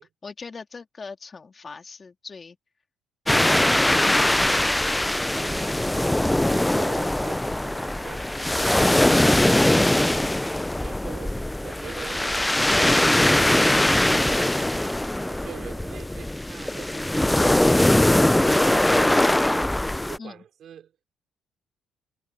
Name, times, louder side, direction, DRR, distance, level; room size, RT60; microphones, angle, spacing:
voice 1, 0.2-2.6 20.2-20.4, left 4 dB, 35° left, 2.9 m, -41 dB
sound 1, 3.3-20.2, left 1 dB, 10° left, 0.6 m, -21 dB
voice 2, 5.3-9.2 9.6-10.3 10.8-12.3 15.2-17.5 20.1-20.9, right 9 dB, 65° right, 5.2 m, -44 dB
supercardioid pair, 65°, 0 cm